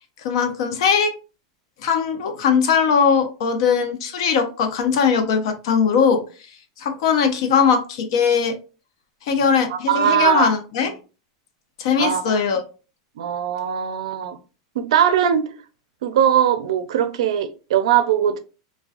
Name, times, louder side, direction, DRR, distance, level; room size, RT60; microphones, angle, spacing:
voice 1, 0.2-1.1 1.8-6.2 6.8-8.6 9.2-10.9 11.8-12.6, left 6 dB, 65° left, 0.5 m, -20 dB
voice 2, 9.7-10.5 12.0-12.4 13.2-14.4 14.7-15.5 16.0-18.4, right 9 dB, 80° right, 0.4 m, -20 dB
2.3 x 2.2 x 2.4 m
supercardioid pair, 150°, 3 cm